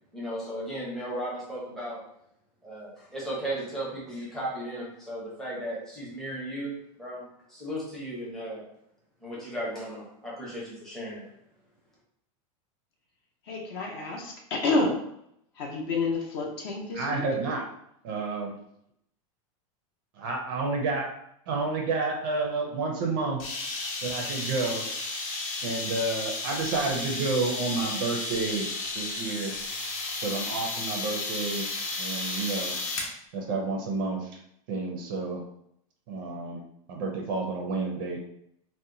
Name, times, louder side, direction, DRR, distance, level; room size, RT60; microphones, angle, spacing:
voice 1, 0.1-2.0 2.6-8.6 9.2-11.2, right 1 dB, ahead, -8 dB, 0.6 m, -36 dB
voice 2, 13.5-14.9 15.6-17.2, left 3 dB, 45° left, 0 dB, 0.7 m, -29 dB
voice 3, 16.9-17.6 18.0-18.5 20.2-21.1 21.5-23.4 24.0-24.8 25.6-28.7 28.9-29.5 30.2-31.7 32.0-32.7 33.3-34.4 34.7-35.4 36.1-36.6 36.9-38.2, right 3 dB, 40° right, 1 dB, 0.5 m, -30 dB
sound 1, 23.4-33.1, left 2 dB, 85° left, 1.0 m, -33 dB
2.7 x 2.1 x 3.7 m, 0.75 s
supercardioid pair, 180°, 18 cm